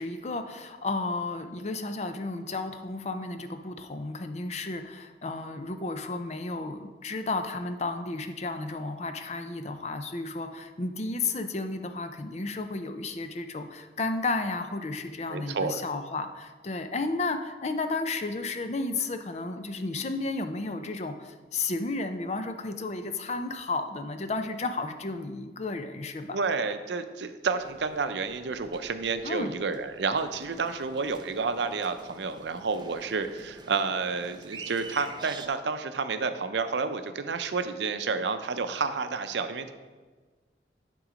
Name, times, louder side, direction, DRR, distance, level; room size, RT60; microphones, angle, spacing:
voice 1, 0.0-26.4 29.2-29.6, left 3 dB, 40° left, 8 dB, 0.5 m, -33 dB
voice 2, 15.3-15.8 26.3-39.7, right 4 dB, 80° right, 9 dB, 0.5 m, -30 dB
sound 1, 27.6-35.5, right 4 dB, 25° right, 0.4 m, -47 dB
10.0 x 3.9 x 5.0 m, 1.4 s
head